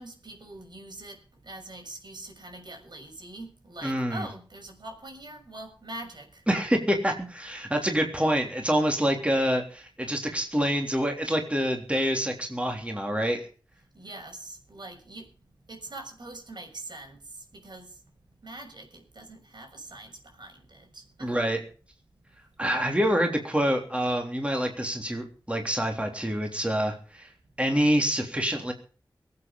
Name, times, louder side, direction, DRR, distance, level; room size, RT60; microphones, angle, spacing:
voice 1, 0.0-6.4 13.9-15.3 15.7-18.0 18.4-21.4, right 2 dB, 65° right, 3 dB, 6.4 m, -43 dB
voice 2, 3.8-4.3 6.5-13.5 21.2-21.6 22.6-27.3 27.6-28.7, equal, 15° right, 3 dB, 3.6 m, -26 dB
23.0 x 8.8 x 5.5 m, 0.40 s
wide cardioid pair, 55°, 8 cm